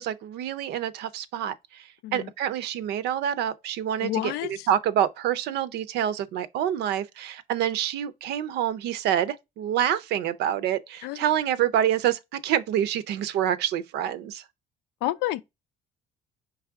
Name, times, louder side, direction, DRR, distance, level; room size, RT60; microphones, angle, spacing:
voice 1, 0.0-4.3 4.7-14.4, right 10 dB, 80° right, 0.6 m, -27 dB
voice 2, 4.0-4.7 11.0-11.3 15.0-15.4, left 15 dB, 90° left, 0.4 m, -29 dB
4.8 x 3.2 x 3.5 m
cardioid pair, 110°, 17 cm